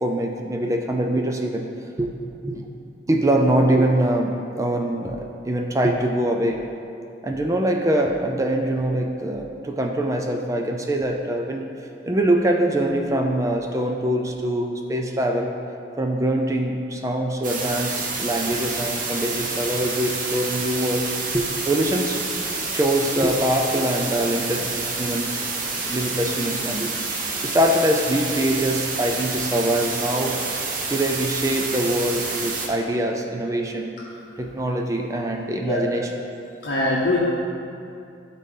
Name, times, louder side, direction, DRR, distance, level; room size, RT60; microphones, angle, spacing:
voice 1, 0.0-1.7 2.0-2.1 2.4-2.7 3.1-6.6 7.2-11.7 12.1-15.5 16.0-22.2 22.7-24.7 25.0-25.4 25.8-30.4 30.9-33.9 34.4-36.1, right 1 dB, 15° right, 2 dB, 0.4 m, -23 dB
sound 1, 17.4-32.7, right 4 dB, 45° right, 0.9 m, -28 dB
voice 2, 36.6-37.2, left 2 dB, 60° left, -6 dB, 0.8 m, -22 dB
12.0 x 4.1 x 3.8 m, 2.6 s
head